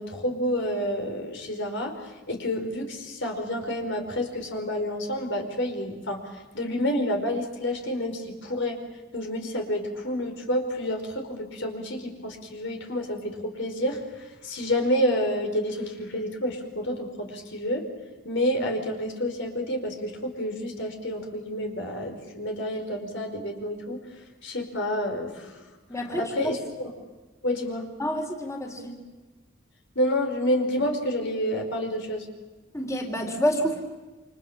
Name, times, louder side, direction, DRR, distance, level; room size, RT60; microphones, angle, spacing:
voice 1, 0.0-1.9 2.3-6.2 6.5-8.8 9.1-17.9 18.2-24.0 24.4-25.5 26.2-26.6 27.4-27.9 29.9-32.3, equal, 65° left, 4 dB, 4.9 m, -29 dB
voice 2, 25.9-26.5 28.0-29.0 32.7-33.8, equal, 15° left, 2 dB, 3.7 m, -28 dB
29.0 x 26.5 x 7.3 m, 1.2 s
head